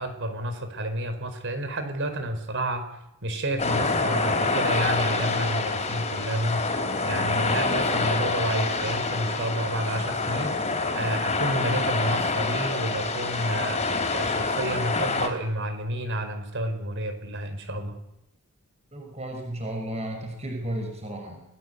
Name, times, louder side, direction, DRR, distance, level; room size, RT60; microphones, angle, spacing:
voice 1, 0.0-2.9 3.2-10.5 10.9-13.8 14.1-18.0, right 1 dB, 60° right, 9 dB, 4.7 m, -30 dB
sound 1, 3.6-15.3, left 3 dB, 30° left, 4.4 m, -26 dB
voice 2, 18.9-21.4, right 1 dB, 30° right, 4 dB, 5.6 m, -33 dB
29.5 x 20.0 x 8.2 m, 0.86 s
head